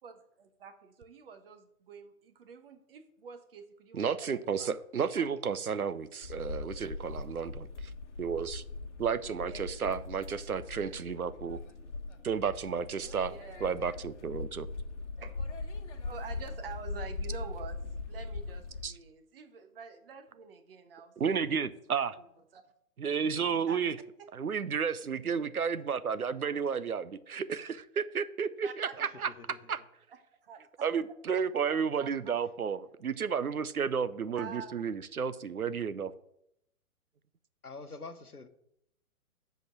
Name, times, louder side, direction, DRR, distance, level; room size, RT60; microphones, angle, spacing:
voice 1, 0.0-4.7 5.2-5.4 9.5-9.6 10.3-10.4 13.3-13.7 15.2-15.3 16.0-17.8 18.1-21.6 22.0-22.3 22.5-22.6 23.7-23.8 24.2-24.3 28.6-29.3 30.4-31.1 32.0-32.4 34.3-34.8, right 6 dB, 40° right, 8 dB, 1.2 m, -48 dB
voice 2, 3.9-7.9 8.2-8.6 9.0-11.6 12.2-13.3 13.6-14.7 18.8-18.9 21.2-22.1 23.0-24.0 24.3-29.3 29.7-29.8 30.8-36.1, right 6 dB, 75° right, 15 dB, 0.7 m, -32 dB
sound 1, 6.2-18.9, left 3 dB, 55° left, 1.2 m, -40 dB
voice 3, 29.3-29.6 37.6-38.5, left 3 dB, 85° left, 10 dB, 1.1 m, -45 dB
7.7 x 5.4 x 7.4 m, 0.76 s
figure-of-eight pair, 120°, 44 cm